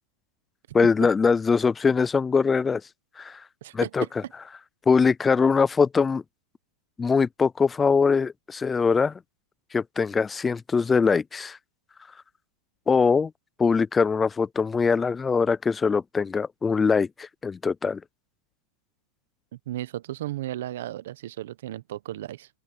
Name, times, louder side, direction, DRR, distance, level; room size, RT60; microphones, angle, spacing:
voice 1, 0.7-2.8 3.2-3.4 3.7-4.0 4.9-6.2 7.0-9.2 9.7-11.6 12.9-13.3 13.6-18.0, left 5 dB, 15° left, 0.4 m, -22 dB
voice 2, 3.6-4.1 19.7-22.5, right 13 dB, 75° right, 0.9 m, -34 dB
open air
supercardioid pair, 140°, 0 cm